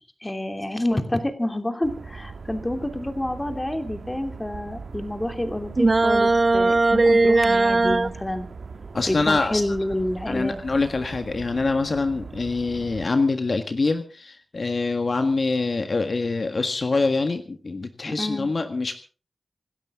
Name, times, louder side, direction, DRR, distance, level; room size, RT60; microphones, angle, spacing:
voice 1, 0.2-8.5 9.1-10.6 18.1-18.5, left 1 dB, 20° left, 7 dB, 2.9 m, -28 dB
sound 1, 1.8-13.1, right 4 dB, 75° right, 1.4 m, -40 dB
sound 2, 5.8-8.1, right 3 dB, 45° right, 0.8 m, -18 dB
voice 2, 8.9-9.6 10.2-18.9, left 3 dB, 55° left, 7 dB, 1.6 m, -25 dB
26.5 x 13.0 x 3.7 m, 0.37 s
wide cardioid pair, 65°, 0 cm